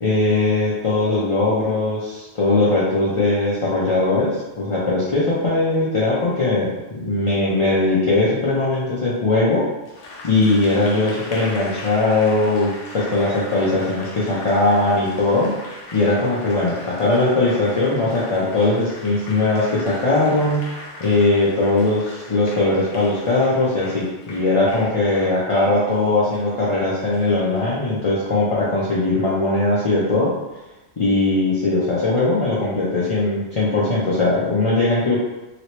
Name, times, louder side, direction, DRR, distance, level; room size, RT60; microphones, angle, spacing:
voice 1, 0.0-9.6 10.2-12.7 12.9-15.5 15.9-20.6 21.0-30.3 31.0-35.2, left 2 dB, 40° left, -8 dB, 0.4 m, -20 dB
Applause, 9.9-27.7, left 2 dB, 85° left, 1.1 m, -39 dB
3.0 x 2.9 x 3.0 m, 1.1 s
omnidirectional pair, 1.3 m